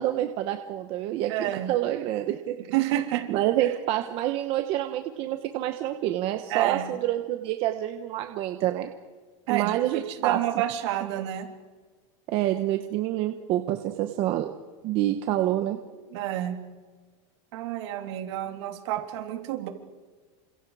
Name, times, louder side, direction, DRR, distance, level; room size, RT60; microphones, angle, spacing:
voice 1, 0.0-2.7 3.3-8.9 9.5-10.4 12.3-14.5 14.8-15.8, right 13 dB, 35° right, 7 dB, 1.1 m, -27 dB
voice 2, 1.3-1.7 2.7-3.3 3.6-3.7 6.5-6.9 9.5-11.5 16.1-16.6 17.5-19.7, right 12 dB, 55° right, 5 dB, 3.3 m, -29 dB
29.0 x 26.5 x 4.9 m, 1.4 s
supercardioid pair, 175°, 17 cm